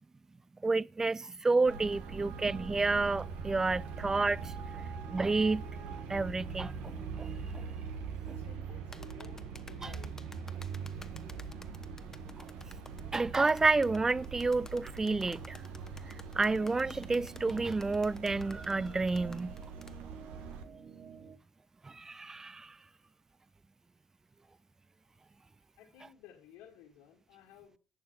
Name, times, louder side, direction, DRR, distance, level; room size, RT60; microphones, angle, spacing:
voice 1, 0.6-4.5 5.1-5.7 6.1-7.6 9.8-9.9 12.4-12.5 13.1-15.6 16.3-19.6 21.8-22.8, right 3 dB, 25° right, 0.4 m, -30 dB
Traffic noise roadway noise, 1.7-20.6, right 6 dB, 85° right, 1.6 m, -43 dB
sound 1, 2.0-21.3, right 5 dB, 60° right, 6.1 m, -51 dB
voice 2, 8.2-10.2 25.8-27.8, left 10 dB, 90° left, 2.2 m, -56 dB
sound 2, 8.9-20.0, left 2 dB, 20° left, 1.0 m, -52 dB
11.5 x 7.5 x 5.6 m
supercardioid pair, 60°, 2 cm